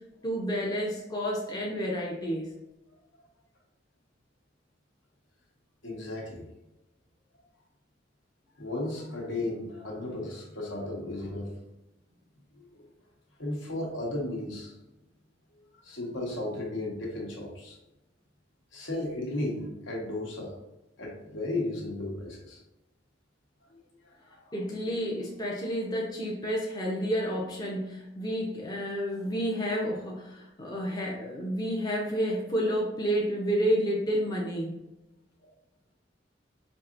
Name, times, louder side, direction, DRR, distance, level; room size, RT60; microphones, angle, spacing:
voice 1, 0.2-2.5 24.5-34.8, equal, 20° left, -2 dB, 0.5 m, -30 dB
voice 2, 5.8-6.5 8.6-11.5 12.5-12.9 13.4-14.7 15.8-17.8 18.7-20.6 21.0-22.6 23.7-24.5 35.4-35.5, left 2 dB, 80° left, -1 dB, 1.1 m, -35 dB
4.6 x 2.8 x 2.5 m, 0.97 s
head